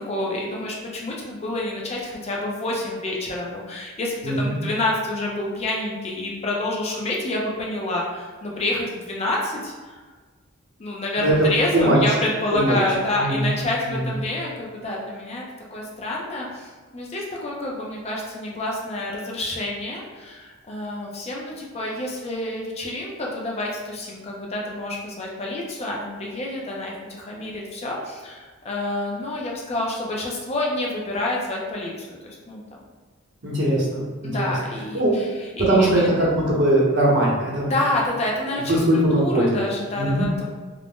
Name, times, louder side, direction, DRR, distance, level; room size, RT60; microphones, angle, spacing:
voice 1, 0.0-10.0 10.8-15.4 15.7-32.6 34.2-35.3 35.6-36.1 37.7-38.8 39.1-40.4, left 2 dB, 30° left, -2 dB, 0.4 m, -28 dB
voice 2, 4.2-4.5 11.2-11.5 11.7-12.0 12.5-12.8 13.2-13.6 13.9-14.1 33.4-34.5 34.9-35.2 35.6-37.7 38.5-39.6 39.9-40.4, right 1 dB, 55° right, -6 dB, 0.8 m, -20 dB
2.5 x 2.0 x 3.4 m, 1.4 s
head